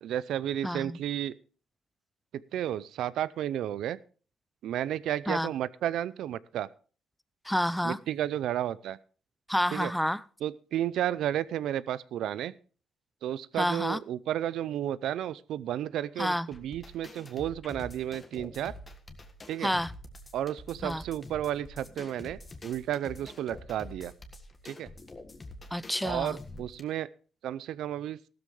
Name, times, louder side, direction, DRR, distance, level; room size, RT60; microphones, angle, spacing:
voice 1, 0.0-1.4 2.5-4.0 4.6-6.7 7.8-9.0 9.7-9.9 10.4-12.5 13.2-18.7 19.5-19.7 20.3-24.1 24.6-24.9 26.0-27.1 27.4-28.2, right 11 dB, 80° right, 0.5 m, -32 dB
voice 2, 0.6-1.0 5.3-5.5 7.5-8.0 9.5-10.2 13.6-14.0 16.2-16.5 19.6-19.9 20.8-21.0 25.7-26.4, equal, 5° left, 0.5 m, -29 dB
sound 1, 16.5-26.8, left 2 dB, 30° left, 1.6 m, -46 dB
14.5 x 13.0 x 3.2 m
cardioid pair, 90°, 0 cm